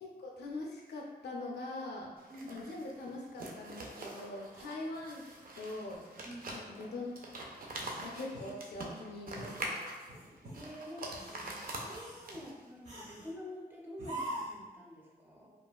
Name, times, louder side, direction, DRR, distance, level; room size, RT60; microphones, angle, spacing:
voice 1, 0.0-2.1 2.5-5.2 5.6-6.0 6.5-7.1 8.0-9.8, left 2 dB, 90° left, -1 dB, 0.4 m, -42 dB
sound 1, 2.2-12.7, right 1 dB, 60° right, 0.5 m, -44 dB
voice 2, 6.2-6.5 10.5-11.3 11.8-15.5, left 1 dB, 10° right, -4 dB, 0.6 m, -47 dB
sound 2, 7.8-8.9 9.4-9.6 10.1-10.6 11.1-11.6 11.9-12.3 12.8-13.3 14.0-14.6, right 1 dB, 45° right, 0.8 m, -44 dB
3.0 x 2.3 x 2.2 m, 1.3 s
cardioid pair, 75°, 17 cm